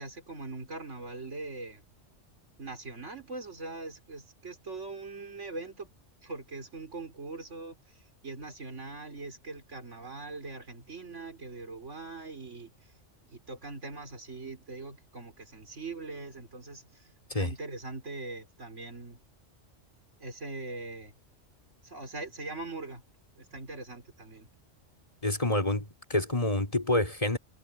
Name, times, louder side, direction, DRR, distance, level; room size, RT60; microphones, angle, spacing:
voice 1, 0.0-1.8 2.6-5.9 6.2-12.7 13.3-17.1 17.4-19.2 20.2-21.1 21.8-23.0 23.4-24.5, right 3 dB, 70° right, 4.1 m, -41 dB
voice 2, 25.2-27.4, left 1 dB, 25° left, 3.7 m, -28 dB
omnidirectional pair, 1.3 m